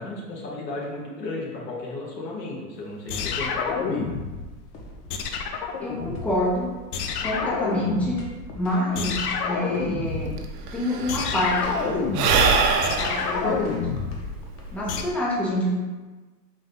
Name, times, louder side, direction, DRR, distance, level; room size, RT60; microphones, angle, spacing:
voice 1, 0.0-4.1, left 2 dB, 85° left, -3 dB, 1.3 m, -34 dB
sound 1, 3.1-4.6 5.1-6.6 6.9-8.5 9.0-15.0, left 5 dB, 70° left, 0.6 m, -29 dB
sound 2, 4.7-14.7, left 1 dB, 30° left, 0.8 m, -45 dB
voice 2, 5.8-6.7 7.2-8.2 8.5-10.3 10.7-12.1 12.8-13.7 14.7-15.7, left 1 dB, 5° left, -4 dB, 0.4 m, -27 dB
Sigh / Breathing, 10.1-10.2 10.4-15.1, right 5 dB, 70° right, 0.7 m, -24 dB
3.7 x 2.7 x 3.4 m, 1.3 s
hypercardioid pair, 115°, 48 cm